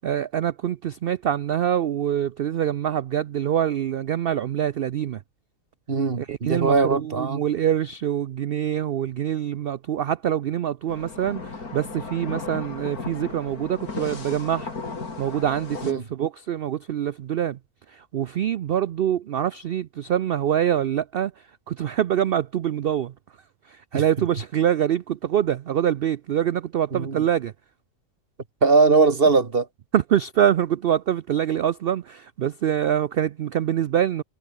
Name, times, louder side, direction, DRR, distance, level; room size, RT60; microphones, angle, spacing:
voice 1, 0.0-5.2 6.2-14.8 15.2-17.6 17.9-23.1 23.7-27.5 29.9-34.2, right 10 dB, 70° right, 0.5 m, -25 dB
voice 2, 5.9-7.4 15.8-16.0 23.9-24.0 26.9-27.2 28.6-29.7, right 4 dB, 40° right, 1.6 m, -20 dB
sound 1, 10.9-15.9, left 4 dB, 85° left, 3.6 m, -35 dB
omnidirectional pair, 1.5 m